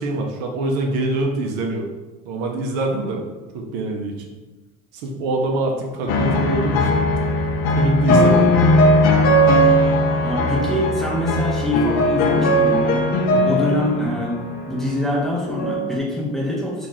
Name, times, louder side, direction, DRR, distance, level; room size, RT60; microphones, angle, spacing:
voice 1, 0.0-1.9 2.2-3.2 3.5-4.1 4.9-7.0 7.8-8.5 13.3-13.5, right 2 dB, 60° right, 2 dB, 0.6 m, -24 dB
sound 1, 6.1-14.7 15.5-16.0, left 1 dB, 55° left, 0.5 m, -18 dB
voice 2, 10.2-13.0 13.4-14.3 14.7-16.9, equal, ahead, -6 dB, 0.7 m, -24 dB
2.9 x 2.4 x 3.9 m, 1.2 s
cardioid pair, 160°, 18 cm